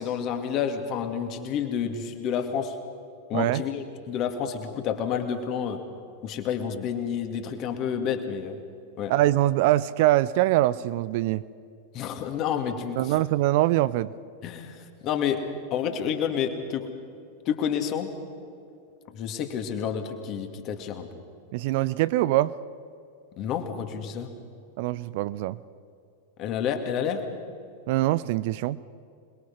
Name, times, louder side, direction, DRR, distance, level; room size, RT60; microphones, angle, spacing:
voice 1, 0.0-2.8 3.3-5.8 6.2-8.6 9.0-9.1 11.9-13.1 14.4-16.9 17.5-18.1 19.1-21.1 23.4-24.4 26.4-27.2, left 8 dB, 35° left, 6 dB, 2.4 m, -29 dB
voice 2, 9.1-11.4 13.0-14.1 21.5-22.6 24.8-25.6 27.9-28.8, right 16 dB, 50° right, 17 dB, 0.5 m, -23 dB
27.0 x 21.5 x 5.6 m, 2.5 s
figure-of-eight pair, 90°, 0 cm